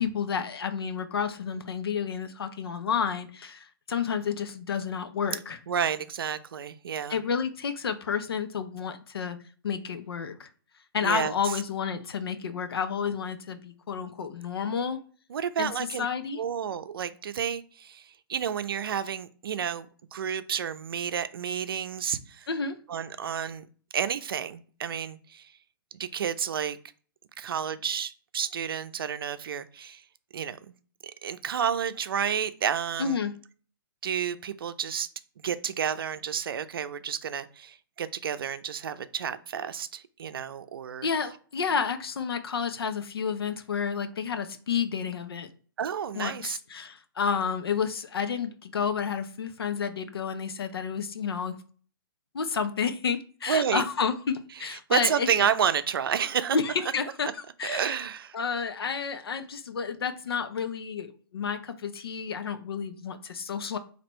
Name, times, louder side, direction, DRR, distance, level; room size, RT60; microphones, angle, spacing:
voice 1, 0.0-5.6 7.1-9.4 9.6-10.5 10.9-15.0 15.6-16.4 22.5-22.8 33.0-33.3 41.0-45.5 46.1-51.6 52.3-55.5 56.5-57.3 57.6-58.0 58.3-63.8, left 6 dB, 85° left, 9 dB, 0.7 m, -30 dB
voice 2, 5.7-7.2 11.0-11.6 15.3-16.1 16.4-22.5 22.9-23.7 23.9-25.5 26.0-26.8 27.4-30.0 30.3-30.6 31.0-33.2 34.0-35.1 35.4-41.1 45.8-46.6 53.5-53.9 54.6-56.6 57.6-58.4, right 8 dB, 70° right, 12 dB, 0.5 m, -30 dB
4.3 x 2.9 x 4.3 m, 0.42 s
hypercardioid pair, 160°, 12 cm